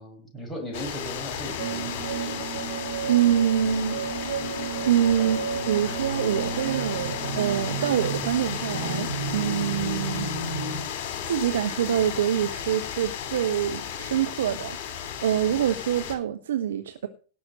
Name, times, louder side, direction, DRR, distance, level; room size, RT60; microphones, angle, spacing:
voice 1, 0.0-2.7 5.2-5.4, equal, 10° left, 6.1 m, -38 dB
sound 1, 0.7-16.2, left 9 dB, 50° left, 2.9 m, -34 dB
sound 2, 1.6-10.8, right 5 dB, 85° right, 4.5 m, -32 dB
voice 2, 3.1-4.3 4.9-5.4 5.7-10.3 11.2-17.1, right 10 dB, 60° right, 0.9 m, -25 dB
17.5 x 6.0 x 6.3 m
figure-of-eight pair, 90°, 0 cm